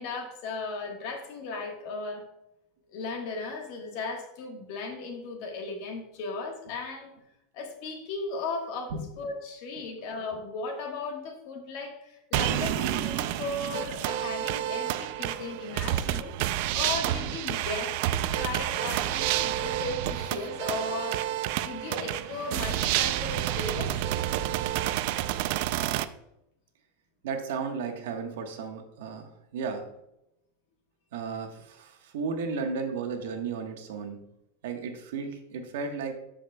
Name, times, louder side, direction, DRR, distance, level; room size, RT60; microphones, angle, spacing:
voice 1, 0.0-2.3 2.9-7.1 7.5-16.4 16.7-21.3 21.6-24.0, left 3 dB, 45° left, 3 dB, 1.4 m, -36 dB
sound 1, 12.3-26.0, right 13 dB, 45° right, 0.3 m, -29 dB
voice 2, 27.2-29.9 31.1-34.2 34.6-36.1, right 5 dB, 70° right, 4 dB, 1.2 m, -34 dB
13.0 x 5.1 x 2.3 m, 0.84 s
supercardioid pair, 175°, 0 cm